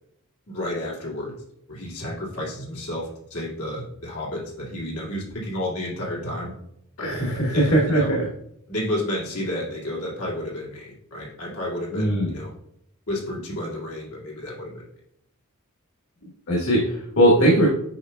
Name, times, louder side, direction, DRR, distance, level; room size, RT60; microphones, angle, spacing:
voice 1, 0.5-1.4 1.7-6.5 7.5-8.1 8.7-12.5 13.1-14.9, left 1 dB, 90° left, -4 dB, 2.4 m, -31 dB
voice 2, 7.0-8.2 11.9-12.3 16.5-17.7, right 1 dB, 65° left, -3 dB, 1.5 m, -20 dB
8.3 x 5.3 x 2.3 m, 0.76 s
head